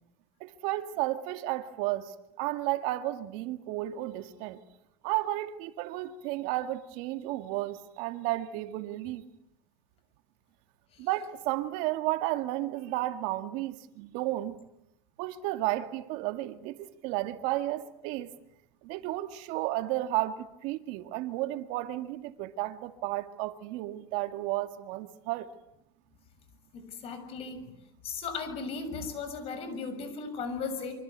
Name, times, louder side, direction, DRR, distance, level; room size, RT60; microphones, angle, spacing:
voice 1, 0.4-4.6 5.0-9.2 11.0-14.6 15.2-18.3 18.8-25.5, right 16 dB, 60° right, 2.2 m, -33 dB
voice 2, 26.7-27.7 28.0-30.9, left 5 dB, 45° left, 6.7 m, -36 dB
26.5 x 25.0 x 8.3 m
supercardioid pair, 130°, 14 cm